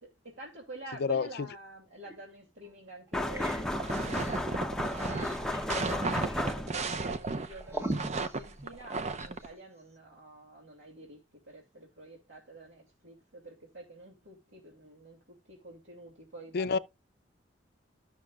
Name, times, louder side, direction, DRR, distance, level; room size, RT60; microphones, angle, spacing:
voice 1, 0.0-5.4 5.8-11.2 11.4-16.8, right 2 dB, 70° right, 2.6 m, -48 dB
voice 2, 1.0-1.3 16.5-16.8, left 4 dB, 55° left, 0.4 m, -27 dB
sound 1, 2.0-2.2 2.7-2.8 3.1-9.4, right 1 dB, 15° right, 1.3 m, -42 dB
sound 2, 3.1-7.0, left 1 dB, 5° left, 0.7 m, -33 dB
Walking in snow, 3.6-9.5, right 3 dB, 35° right, 0.6 m, -35 dB
14.5 x 6.3 x 2.4 m
head